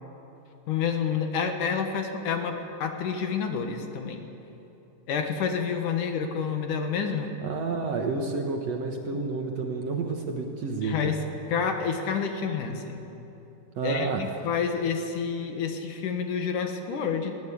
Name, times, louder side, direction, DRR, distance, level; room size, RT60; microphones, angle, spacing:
voice 1, 0.7-4.3 5.1-7.3 10.8-11.2 11.5-13.0 13.8-17.4, left 6 dB, 65° left, 5 dB, 2.8 m, -29 dB
voice 2, 7.4-11.2 13.8-14.2, right 4 dB, 60° right, 3 dB, 2.0 m, -30 dB
22.0 x 17.0 x 8.6 m, 3.0 s
omnidirectional pair, 4.1 m